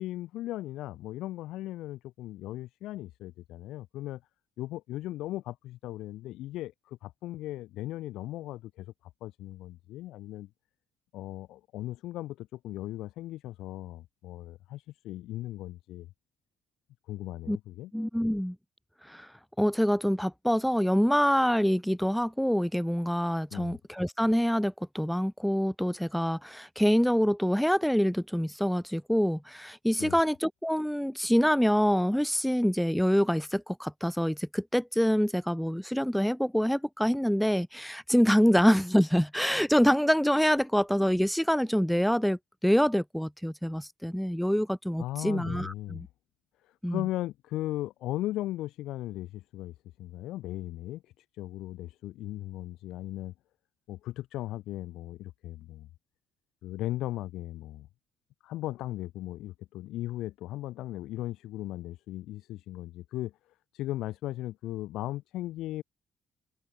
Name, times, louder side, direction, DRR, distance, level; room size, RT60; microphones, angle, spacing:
voice 1, 0.0-4.2 4.6-8.9 9.2-10.5 11.1-16.1 17.1-17.9 23.5-23.8 30.0-30.2 45.0-46.0 46.6-53.3 53.9-55.9 56.6-57.9 58.4-63.3 63.7-65.8, left 15 dB, 90° left, 1.1 m, -37 dB
voice 2, 17.9-18.6 19.1-19.3 19.6-46.1 46.8-47.0, equal, ahead, 0.5 m, -26 dB
cardioid pair, 90°, 0 cm